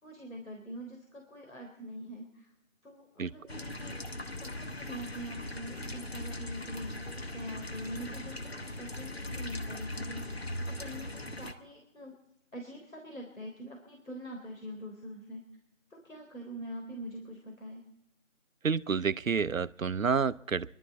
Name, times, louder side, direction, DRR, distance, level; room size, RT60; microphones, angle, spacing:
voice 1, 0.0-2.5 2.8-4.0 4.4-12.1 12.5-15.5 15.9-17.9, equal, 80° left, 1 dB, 3.8 m, -44 dB
sound 1, 3.5-11.5, left 1 dB, 50° left, 1.1 m, -39 dB
voice 2, 18.6-20.7, right 5 dB, 85° right, 16 dB, 0.7 m, -29 dB
26.0 x 12.0 x 4.1 m, 0.82 s
figure-of-eight pair, 175°, 39 cm